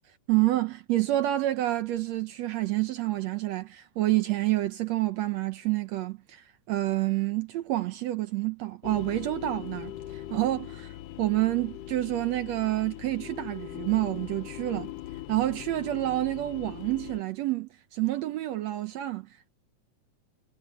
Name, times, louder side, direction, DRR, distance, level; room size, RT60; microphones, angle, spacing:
voice 1, 0.3-10.9 11.2-14.9 15.3-19.5, right 16 dB, 70° right, 1.7 m, -28 dB
sound 1, 8.8-17.2, left 14 dB, 85° left, 2.4 m, -41 dB
omnidirectional pair, 3.7 m